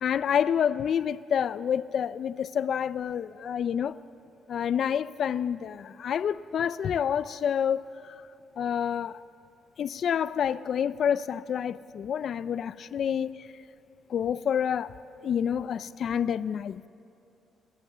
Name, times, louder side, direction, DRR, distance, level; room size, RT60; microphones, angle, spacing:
voice 1, 0.0-4.0 4.5-8.1 8.6-9.2 9.8-13.5 14.1-14.9 15.2-16.9, left 8 dB, 60° left, 0.4 m, -28 dB
28.5 x 14.5 x 6.7 m
cardioid pair, 90°, 0 cm